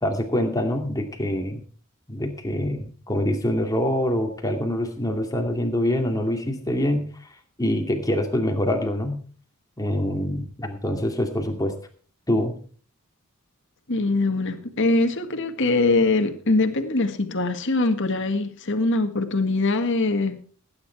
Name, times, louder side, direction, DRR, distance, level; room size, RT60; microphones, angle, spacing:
voice 1, 0.0-1.6 2.1-7.3 7.6-9.2 9.8-11.7 12.3-12.5, left 1 dB, 15° left, 2.4 m, -25 dB
voice 2, 13.9-20.4, left 2 dB, 55° left, 1.7 m, -22 dB
17.0 x 9.7 x 4.5 m
head